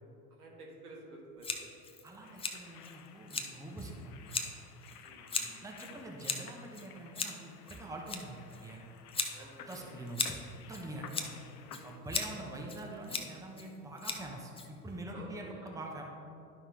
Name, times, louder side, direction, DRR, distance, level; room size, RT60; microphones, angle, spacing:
voice 1, 0.3-1.9 5.0-5.3 5.9-6.2 9.3-10.0 11.7-12.1 15.1-15.7, right 2 dB, 75° right, -2 dB, 1.7 m, -52 dB
Scissors, 1.4-15.1, left 4 dB, 10° left, 0.6 m, -40 dB
voice 2, 2.0-4.6 5.4-8.8 9.4-10.4 10.7-11.3 11.8-16.0, right 1 dB, 5° right, 0 dB, 1.1 m, -45 dB
sound 1, 2.2-12.0, left 8 dB, 75° left, 0.6 m, -54 dB
11.0 x 5.6 x 3.3 m, 2.7 s
figure-of-eight pair, 75°, 45 cm